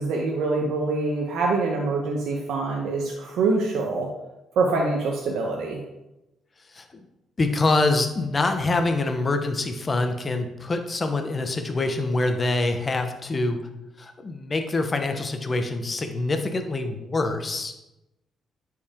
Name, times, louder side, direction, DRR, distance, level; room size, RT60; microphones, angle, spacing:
voice 1, 0.0-4.1 4.6-5.8, right 3 dB, 80° right, 0 dB, 1.0 m, -25 dB
voice 2, 6.7-7.0 7.4-13.6 14.0-17.7, left 2 dB, 30° left, 6 dB, 1.0 m, -25 dB
10.0 x 4.8 x 3.7 m, 0.95 s
cardioid pair, 90°, 0 cm